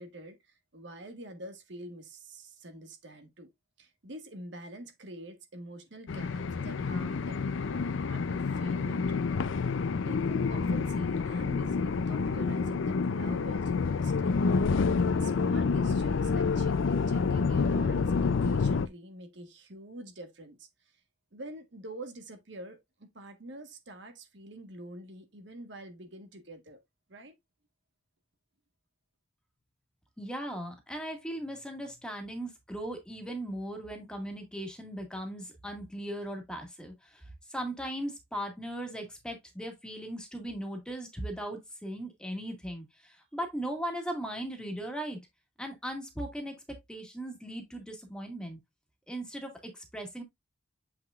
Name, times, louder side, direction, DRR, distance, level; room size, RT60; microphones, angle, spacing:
voice 1, 0.0-3.5 3.8-9.3 10.0-14.4 14.7-20.7 21.3-26.8 27.1-27.3, right 1 dB, 65° right, 1.3 m, -46 dB
sound 1, 6.1-18.9, left 4 dB, 85° left, 0.5 m, -28 dB
voice 2, 30.2-37.2 37.5-45.2 45.6-48.6 49.1-50.2, right 1 dB, 5° left, 1.8 m, -38 dB
7.6 x 5.8 x 2.4 m
head